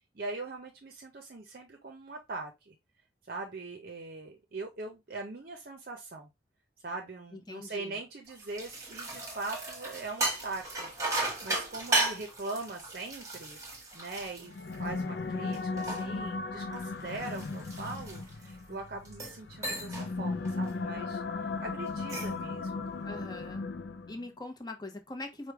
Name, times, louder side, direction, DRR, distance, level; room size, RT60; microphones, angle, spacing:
voice 1, 0.1-2.8 3.3-6.3 6.8-13.6 13.9-22.9, right 3 dB, 50° right, 0.6 m, -41 dB
voice 2, 7.3-8.0 23.0-23.6 24.1-25.5, left 2 dB, 20° left, 0.8 m, -42 dB
sound 1, 8.3-15.1 15.5-18.5 19.0-19.4 19.6-20.1 20.4-20.7 21.9-22.4, right 2 dB, 15° right, 1.3 m, -35 dB
sound 2, 14.4-24.3, left 3 dB, 60° left, 0.4 m, -36 dB
4.9 x 2.2 x 4.6 m
head